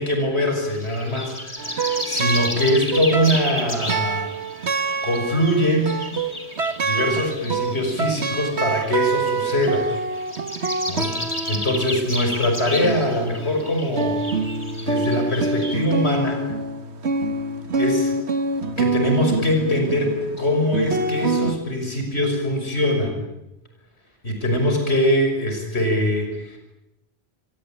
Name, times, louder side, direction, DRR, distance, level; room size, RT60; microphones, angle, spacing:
voice 1, 0.0-4.3 4.7-6.0 6.6-9.9 10.9-14.2 14.9-16.4 17.7-18.2 18.8-23.2 24.2-26.6, left 1 dB, 80° left, 3 dB, 6.3 m, -23 dB
sound 1, 0.7-15.8, left 1 dB, 25° left, 4.0 m, -33 dB
sound 2, 1.6-21.5, right 3 dB, 85° right, 1.8 m, -26 dB
27.5 x 22.5 x 9.1 m, 0.90 s
omnidirectional pair, 1.1 m